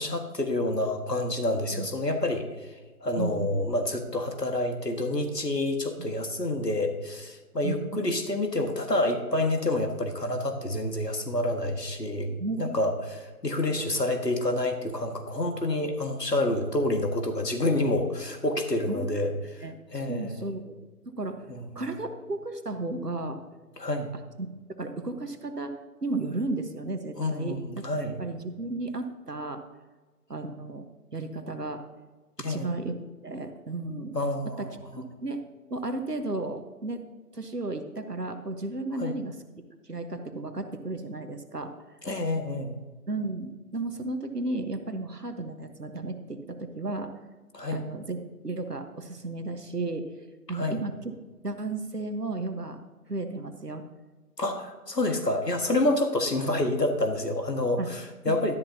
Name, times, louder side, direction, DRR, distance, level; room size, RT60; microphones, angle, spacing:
voice 1, 0.0-2.8 3.0-20.5 21.5-21.9 23.8-24.1 27.2-28.2 32.4-32.7 34.1-35.0 39.0-39.1 42.0-42.8 47.5-47.8 50.5-50.8 54.4-58.5, left 1 dB, 85° left, 5 dB, 1.8 m, -28 dB
voice 2, 3.2-3.5 7.6-8.0 12.4-12.8 13.7-13.9 18.9-19.1 19.6-19.8 20.1-20.8 21.2-21.4 21.7-23.4 24.4-24.5 24.8-25.8 26.0-27.9 28.2-29.6 30.3-30.8 31.1-31.8 32.5-33.0 33.2-34.2 34.6-34.7 35.0-35.4 35.7-37.0 37.3-39.3 39.9-41.7 43.1-47.1 47.7-50.1 50.5-51.2 51.4-52.8 53.1-53.8 57.8-57.9 58.3-58.5, right 2 dB, 75° right, 8 dB, 1.4 m, -34 dB
12.5 x 11.0 x 2.8 m, 1.3 s
figure-of-eight pair, 170°, 47 cm